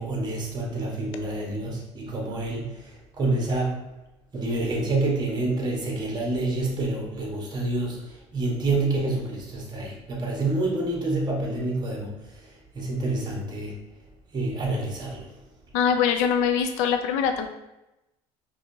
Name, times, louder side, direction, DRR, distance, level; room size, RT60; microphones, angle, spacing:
voice 1, 0.0-2.7 3.2-3.7 4.3-8.0 8.3-12.1 12.7-13.8 14.3-15.3, right 2 dB, 35° right, -2 dB, 1.3 m, -27 dB
voice 2, 15.7-17.5, left 7 dB, 85° left, 6 dB, 0.5 m, -23 dB
4.6 x 2.8 x 2.7 m, 0.94 s
supercardioid pair, 95°, 13 cm